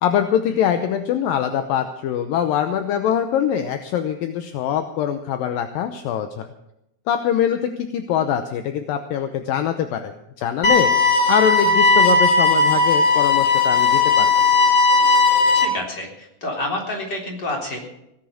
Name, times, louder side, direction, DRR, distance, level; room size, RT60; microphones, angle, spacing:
voice 1, 0.0-6.5 7.1-10.1 10.4-10.9 11.3-14.3, left 9 dB, 75° left, 7 dB, 2.3 m, -23 dB
sound 1, 10.6-15.7, left 3 dB, 45° left, 1.5 m, -16 dB
voice 2, 15.5-17.8, left 1 dB, 25° left, 1 dB, 3.8 m, -28 dB
17.5 x 10.5 x 6.4 m, 0.83 s
omnidirectional pair, 4.7 m